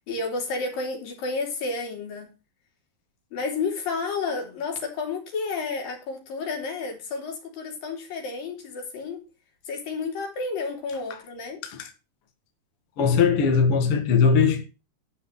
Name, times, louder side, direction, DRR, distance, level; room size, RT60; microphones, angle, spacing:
voice 1, 0.1-2.3 3.3-9.2 9.7-11.6, left 4 dB, 70° left, 4.8 m, -31 dB
voice 2, 13.0-14.7, left 6 dB, 50° left, 2.1 m, -20 dB
12.5 x 5.1 x 7.9 m
omnidirectional pair, 4.2 m